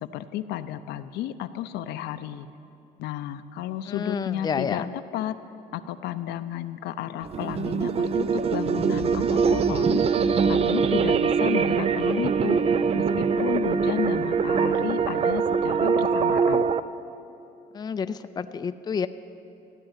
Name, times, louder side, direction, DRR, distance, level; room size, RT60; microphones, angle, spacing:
voice 1, 0.0-2.5 3.0-4.8 5.1-5.4 5.7-10.0 10.5-12.6 12.9-16.7, left 12 dB, 80° left, 10 dB, 0.7 m, -32 dB
voice 2, 3.8-4.9 17.7-19.1, left 6 dB, 25° left, 10 dB, 0.5 m, -29 dB
sound 1, 7.2-16.8, right 6 dB, 35° right, 0.5 m, -23 dB
sound 2, 8.8-13.6, equal, 75° right, 2.9 m, -43 dB
15.5 x 10.0 x 9.1 m, 2.8 s
cardioid pair, 110°, 17 cm